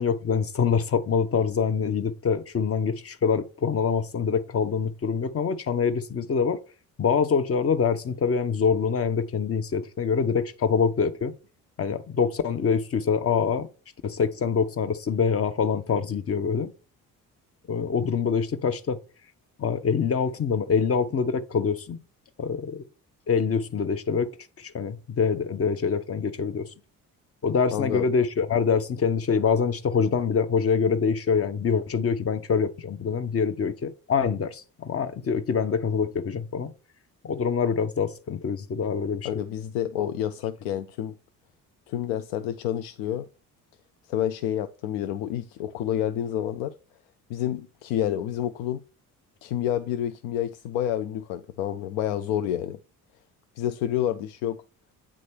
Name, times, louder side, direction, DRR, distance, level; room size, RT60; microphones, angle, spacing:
voice 1, 0.0-6.6 7.0-11.3 11.8-13.7 14.0-16.7 17.7-19.0 19.6-22.0 22.4-22.8 23.3-24.3 24.6-26.7 27.4-36.7 37.2-39.3, left 6 dB, 30° left, 0.8 m, -25 dB
voice 2, 27.7-28.1 39.2-41.1 41.9-43.3 44.1-46.7 47.3-48.8 49.4-52.8 53.6-54.6, left 11 dB, 75° left, 0.5 m, -29 dB
8.6 x 3.2 x 4.4 m
hypercardioid pair, 50°, 43 cm